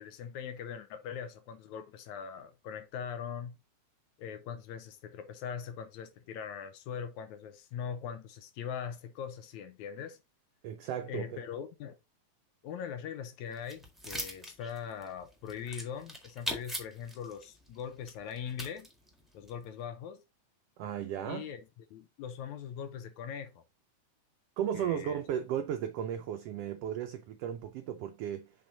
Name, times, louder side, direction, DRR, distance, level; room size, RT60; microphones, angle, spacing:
voice 1, 0.0-3.6 4.2-10.2 11.1-12.0 12.6-18.9 19.3-20.2 21.2-21.6 21.9-23.6 24.7-25.2, left 7 dB, 80° left, 2.1 m, -41 dB
voice 2, 10.6-11.4 20.8-21.5 24.6-28.5, right 9 dB, 80° right, 1.4 m, -35 dB
sound 1, 13.5-19.7, equal, ahead, 0.7 m, -41 dB
7.4 x 3.9 x 3.9 m
omnidirectional pair, 3.4 m